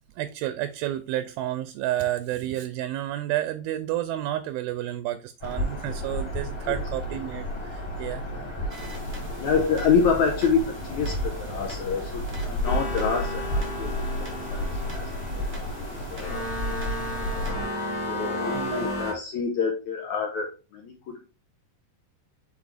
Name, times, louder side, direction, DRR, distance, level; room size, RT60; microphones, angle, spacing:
voice 1, 0.2-8.2 16.9-17.0 18.5-18.9, right 13 dB, 80° right, 2.3 m, -30 dB
Bird vocalization bird call bird song, 5.4-17.7, equal, 10° left, 1.7 m, -32 dB
sound 1, 8.7-17.5, right 2 dB, 60° right, 0.6 m, -46 dB
voice 2, 9.4-15.1 15.3-16.8 17.2-17.7 18.1-21.2, left 5 dB, 75° left, 1.8 m, -28 dB
sound 2, 12.6-19.1, left 1 dB, 40° left, 2.2 m, -33 dB
7.2 x 4.4 x 3.4 m
omnidirectional pair, 4.5 m